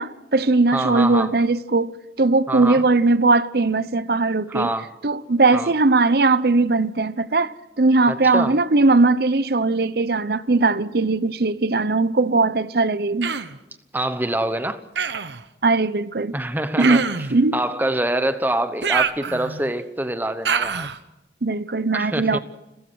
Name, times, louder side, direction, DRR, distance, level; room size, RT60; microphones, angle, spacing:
voice 1, 0.0-1.9 2.2-4.7 5.0-13.3 15.6-16.3 16.8-17.5 21.4-22.4, right 3 dB, 60° right, 0.7 m, -19 dB
voice 2, 0.7-1.3 2.5-2.8 4.5-4.9 5.5-5.7 8.1-8.6 13.9-14.8 16.3-20.9 21.9-22.4, right 1 dB, 10° right, 1.0 m, -25 dB
Human voice, 13.2-13.6 15.0-15.4 16.8-17.4 18.8-19.7 20.5-21.0, right 6 dB, 80° right, 1.0 m, -25 dB
29.5 x 15.5 x 6.3 m
head